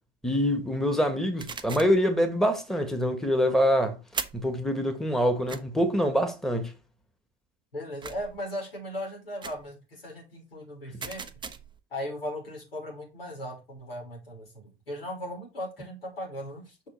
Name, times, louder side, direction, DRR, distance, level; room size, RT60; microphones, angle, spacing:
voice 1, 0.2-4.0 4.3-6.7, equal, ahead, 1.6 m, -25 dB
sound 1, 1.4-2.0 4.1-4.5 5.5-5.6 8.0-8.4 9.4-9.7 11.0-11.8, right 6 dB, 15° right, 0.6 m, -38 dB
voice 2, 7.7-11.2 11.9-16.8, equal, 80° left, 3.3 m, -37 dB
6.5 x 4.4 x 4.4 m
figure-of-eight pair, 70°, 29 cm